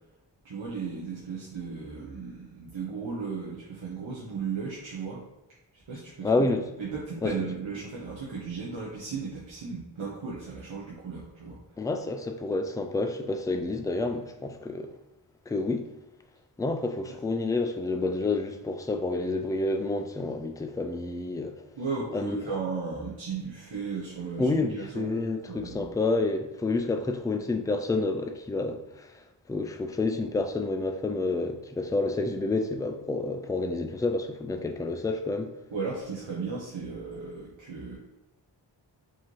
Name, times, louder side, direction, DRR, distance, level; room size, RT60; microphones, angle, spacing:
voice 1, 0.4-5.2 5.7-6.5 6.8-11.6 17.1-17.2 21.8-25.9 35.7-38.0, right 5 dB, 90° right, 0.9 m, -35 dB
voice 2, 6.2-6.7 7.2-7.3 11.8-14.9 15.5-15.9 16.6-21.5 22.1-22.4 24.4-29.1 29.5-35.5, left 3 dB, 10° left, 0.3 m, -29 dB
4.7 x 2.8 x 3.0 m
wide cardioid pair, 55°, 45 cm